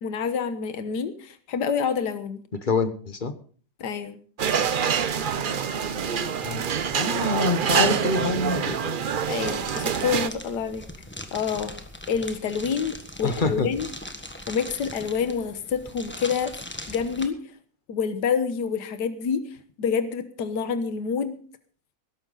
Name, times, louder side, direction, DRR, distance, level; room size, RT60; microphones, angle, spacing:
voice 1, 0.0-2.4 3.8-4.2 9.3-10.8 11.3-11.7 12.1-13.9 14.5-16.5 16.9-17.4 17.9-21.4, left 6 dB, 70° left, 10 dB, 1.7 m, -27 dB
voice 2, 2.6-3.3 6.4-6.6 6.9-8.9 13.2-13.7, left 3 dB, 35° left, 10 dB, 1.1 m, -26 dB
sound 1, 4.4-10.3, right 7 dB, 75° right, 0.4 m, -26 dB
sound 2, 9.5-17.3, left 1 dB, 5° left, 1.2 m, -40 dB
20.0 x 11.5 x 4.0 m, 0.43 s
omnidirectional pair, 1.9 m